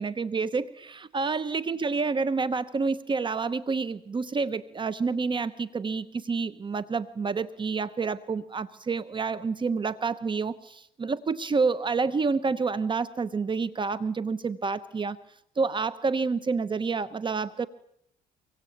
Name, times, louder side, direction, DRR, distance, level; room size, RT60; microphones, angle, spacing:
voice 1, 0.0-15.2 15.6-17.7, right 4 dB, 30° right, 14 dB, 1.0 m, -28 dB
25.0 x 23.5 x 8.7 m, 0.72 s
cardioid pair, 110°, 17 cm